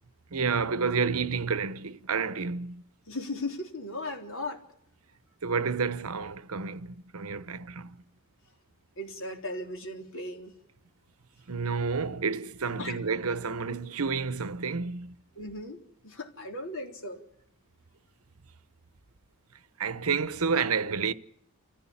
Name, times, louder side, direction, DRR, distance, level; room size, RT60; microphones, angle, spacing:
voice 1, 0.3-2.8 5.4-8.0 11.5-15.2 19.8-21.1, right 5 dB, 70° right, 0.9 m, -30 dB
voice 2, 3.1-4.6 9.0-10.5 12.8-13.0 15.4-15.8 16.0-17.2, left 2 dB, 65° left, 3.7 m, -37 dB
28.0 x 15.5 x 8.7 m
head